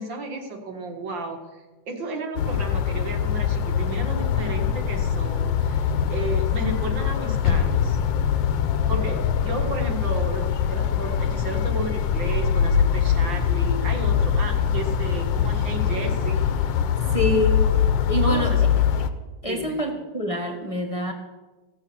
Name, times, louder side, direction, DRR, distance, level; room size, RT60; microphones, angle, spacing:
voice 1, 0.0-8.0 8.9-16.4 18.2-18.7 19.4-19.8, right 2 dB, 85° right, 3 dB, 2.4 m, -33 dB
sound 1, 2.4-19.1, left 8 dB, 90° left, 1.5 m, -23 dB
voice 2, 17.1-17.6 18.1-18.5 19.4-21.1, left 1 dB, 20° left, 4 dB, 1.2 m, -25 dB
15.5 x 7.3 x 7.0 m, 1.2 s
omnidirectional pair, 2.0 m